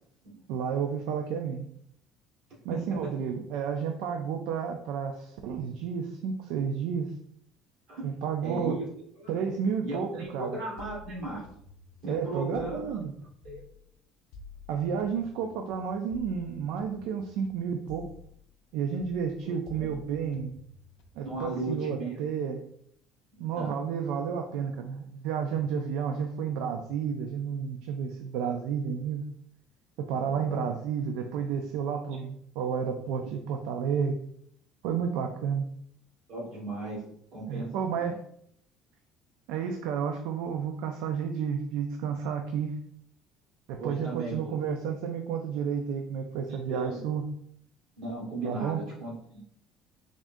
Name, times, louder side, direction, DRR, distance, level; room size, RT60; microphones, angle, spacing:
voice 1, 0.5-1.7 2.6-7.1 8.0-8.8 9.3-10.6 12.1-13.1 14.7-18.1 18.7-20.5 21.2-22.6 23.4-29.2 30.0-34.2 34.8-35.7 37.5-38.2 39.5-42.7 43.7-47.2 48.4-48.8, right 7 dB, 90° right, 4 dB, 0.4 m, -31 dB
voice 2, 2.7-3.1 7.9-8.1 8.4-8.8 9.2-9.3 9.8-11.5 12.0-13.0 13.4-13.6 19.5-19.9 21.2-22.3 23.3-23.8 30.2-30.7 36.3-37.0 37.3-38.2 43.8-44.6 46.5-47.0 48.0-49.4, right 2 dB, 50° right, -4 dB, 1.5 m, -37 dB
sound 1, 10.8-13.9 14.3-18.7 19.0-21.4, left 4 dB, 80° left, 0.4 m, -50 dB
3.6 x 3.6 x 2.6 m, 0.68 s
cardioid pair, 170°, 0 cm